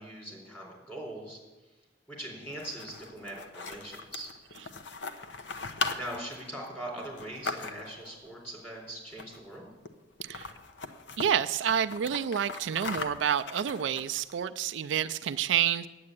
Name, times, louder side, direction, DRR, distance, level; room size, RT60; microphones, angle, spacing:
voice 1, 0.0-1.7 2.1-4.3 5.9-9.7, right 1 dB, 10° left, -2 dB, 3.9 m, -41 dB
sound 1, 2.4-8.1 9.1-9.6 9.8-9.9 10.2-11.3 11.7-14.3, left 4 dB, 65° left, 0.9 m, -39 dB
voice 2, 10.2-10.5 11.2-15.9, right 9 dB, 70° right, 10 dB, 0.4 m, -29 dB
9.6 x 8.6 x 8.1 m, 1.1 s
head